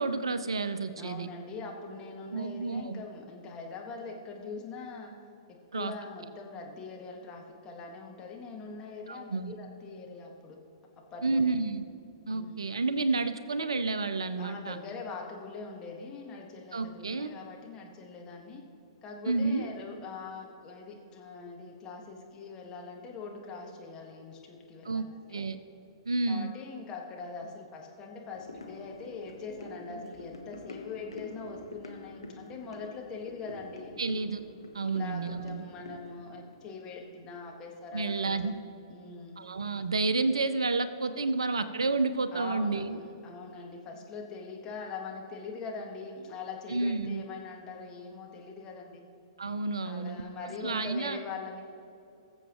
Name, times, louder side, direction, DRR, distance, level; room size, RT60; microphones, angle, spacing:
voice 1, 0.0-1.3 2.3-3.0 5.7-5.9 9.1-9.6 11.2-11.8 12.3-14.8 16.7-17.3 19.3-19.7 24.8-25.1 25.3-25.6 26.1-26.5 34.0-34.4 34.7-35.6 37.9-38.5 39.4-43.0 46.7-47.2 49.4-50.2 50.6-51.2, right 3 dB, 75° right, 12 dB, 0.6 m, -30 dB
voice 2, 1.0-5.1 5.5-10.6 11.1-11.5 12.3-12.7 13.1-13.2 14.4-18.6 19.0-25.5 26.3-33.9 34.8-38.6 38.9-39.4 42.3-49.1 49.8-51.6, left 4 dB, 25° left, 0 dB, 1.6 m, -42 dB
sound 1, 28.3-37.7 38.0-38.1, left 3 dB, 80° left, 1.0 m, -47 dB
20.0 x 7.2 x 3.0 m, 2.6 s
figure-of-eight pair, 110°, 3 cm